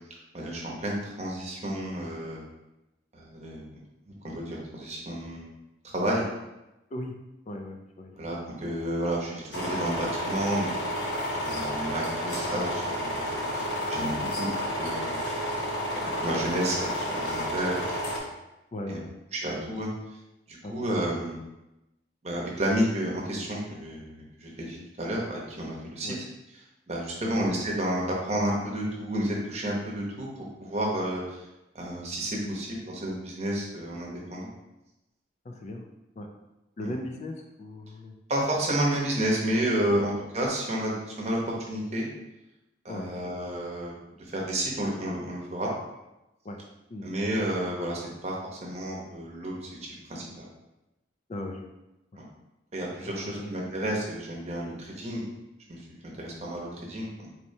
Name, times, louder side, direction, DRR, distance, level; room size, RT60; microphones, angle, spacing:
voice 1, 0.3-2.4 3.1-3.6 4.3-5.5 5.8-6.2 8.2-10.7 11.3-15.2 15.9-17.8 18.9-19.0 19.3-19.9 20.5-21.4 22.2-24.1 24.4-26.1 26.9-31.4 31.7-34.5 36.8-36.9 38.3-42.1 42.8-45.7 47.0-50.5 52.2-52.3 52.7-55.2 55.7-55.8 56.2-57.3, right 1 dB, 35° right, -3 dB, 0.8 m, -31 dB
voice 2, 7.5-8.1 14.2-14.4 18.7-19.1 20.6-21.0 26.0-26.2 27.2-27.4 32.4-32.6 35.4-35.9 36.2-36.3 36.8-38.1 39.9-40.0 42.9-43.2 46.4-46.6 46.9-47.1 51.3-51.7 52.1-52.2 53.2-53.5, left 1 dB, 35° left, 3 dB, 0.3 m, -38 dB
sound 1, 9.5-18.2, equal, 70° left, 0.9 m, -31 dB
4.3 x 3.2 x 2.7 m, 0.96 s
head